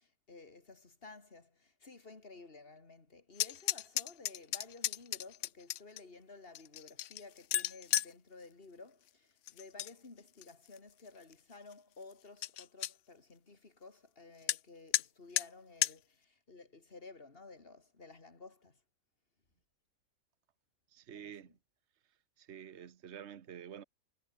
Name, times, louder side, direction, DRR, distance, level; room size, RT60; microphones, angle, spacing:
voice 1, 0.0-18.8 21.1-21.5, left 3 dB, 40° left, 2.9 m, -54 dB
sound 1, 3.3-6.0 6.6-8.1 9.5-9.9 10.3-10.8 11.3-11.4 11.7-11.8 12.1-12.2 12.4-12.9 14.5-14.6 14.9-15.1 15.4-15.5 15.8-15.9, left 13 dB, 65° left, 0.9 m, -34 dB
voice 2, 20.9-21.5 22.4-23.8, right 9 dB, 55° right, 1.3 m, -48 dB
omnidirectional pair, 1.5 m